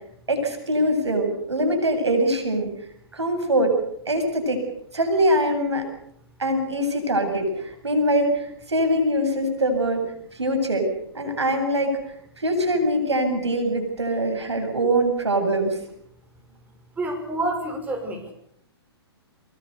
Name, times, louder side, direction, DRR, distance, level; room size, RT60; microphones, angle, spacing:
voice 1, 0.3-2.7 3.1-3.8 4.1-4.6 4.9-5.8 6.4-10.0 10.3-10.9 11.1-12.0 12.4-15.8, right 1 dB, 90° right, 5 dB, 8.0 m, -23 dB
voice 2, 17.0-18.3, right 2 dB, 10° right, 3 dB, 5.7 m, -28 dB
24.5 x 21.5 x 6.9 m, 0.71 s
hypercardioid pair, 125°, 14 cm